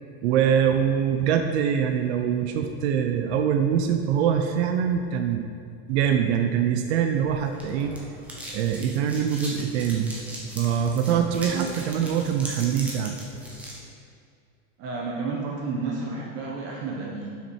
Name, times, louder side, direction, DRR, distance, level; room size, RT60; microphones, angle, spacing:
voice 1, 0.2-5.5 5.9-8.0 8.5-10.1 10.6-13.2, right 8 dB, 60° right, 5 dB, 0.6 m, -24 dB
sound 1, 7.2-13.8, right 1 dB, 5° right, 0.5 m, -39 dB
voice 2, 11.2-11.7 14.8-17.4, right 4 dB, 30° right, -2 dB, 0.9 m, -32 dB
7.3 x 5.9 x 4.5 m, 2.3 s
supercardioid pair, 170°, 38 cm